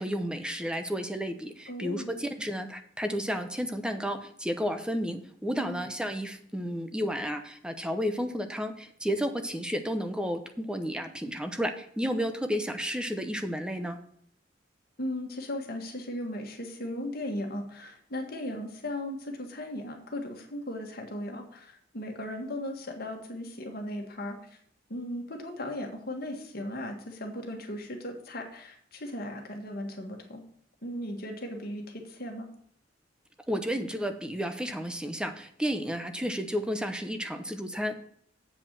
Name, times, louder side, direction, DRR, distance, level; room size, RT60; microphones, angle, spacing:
voice 1, 0.0-14.0 33.5-38.0, equal, 5° right, 7 dB, 0.8 m, -32 dB
voice 2, 1.7-2.2 5.6-5.8 15.0-24.4 24.9-30.4 30.8-32.5, left 1 dB, 55° left, 3 dB, 1.7 m, -37 dB
8.0 x 4.8 x 7.4 m, 0.63 s
head